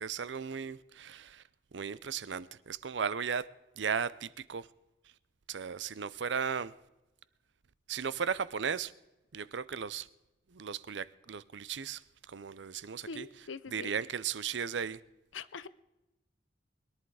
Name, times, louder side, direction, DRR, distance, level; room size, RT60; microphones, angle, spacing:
voice 1, 0.0-1.4 1.7-3.5 3.8-4.7 5.5-6.7 7.9-8.9 9.3-10.1 10.5-15.0, right 6 dB, 70° right, 0.6 m, -36 dB
voice 2, 13.1-13.9 15.3-15.7, left 4 dB, 85° left, 0.7 m, -43 dB
22.0 x 11.0 x 4.8 m
head